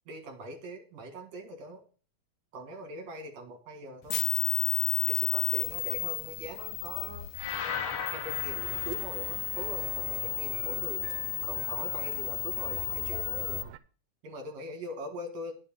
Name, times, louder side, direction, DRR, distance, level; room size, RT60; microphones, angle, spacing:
voice 1, 0.1-1.9 2.5-4.2 5.1-7.3 8.1-11.0 11.4-13.6 14.2-15.5, right 1 dB, 60° right, 5 dB, 2.9 m, -42 dB
sound 1, 4.1-13.6, left 14 dB, 75° left, 2.1 m, -32 dB
sound 2, 7.4-9.6, left 6 dB, 60° left, 1.4 m, -37 dB
sound 3, 8.5-13.8, right 10 dB, 90° right, 2.2 m, -45 dB
9.7 x 5.5 x 6.9 m, 0.38 s
omnidirectional pair, 3.6 m